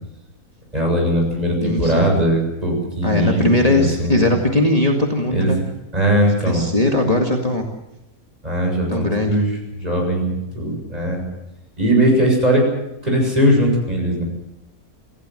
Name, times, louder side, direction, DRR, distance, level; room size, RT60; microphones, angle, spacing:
voice 1, 0.7-4.3 5.3-5.5 5.9-6.6 8.4-9.4 9.8-11.2 11.8-12.7 13.0-14.2, right 1 dB, 25° right, 1 dB, 7.5 m, -19 dB
voice 2, 1.6-2.1 3.0-5.6 6.4-7.7 8.9-9.4, left 2 dB, 25° left, 1 dB, 2.1 m, -19 dB
27.0 x 16.0 x 7.8 m, 0.88 s
omnidirectional pair, 1.5 m